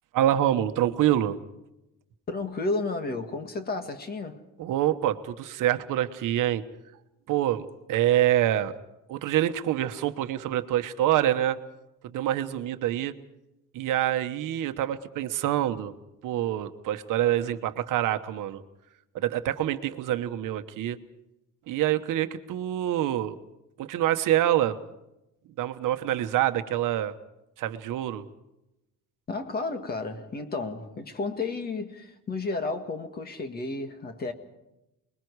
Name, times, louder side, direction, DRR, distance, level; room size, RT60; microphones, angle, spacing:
voice 1, 0.1-1.4 4.6-6.6 7.3-8.7 9.1-11.6 12.0-13.1 13.7-15.9 16.2-18.6 19.1-21.0 21.7-23.4 23.8-24.8 25.6-27.1 27.6-28.3, right 12 dB, 70° right, 1.2 m, -26 dB
voice 2, 2.3-4.4 29.3-34.3, left 3 dB, 30° left, 1.8 m, -32 dB
29.0 x 21.5 x 4.8 m
cardioid pair, 175°, 33 cm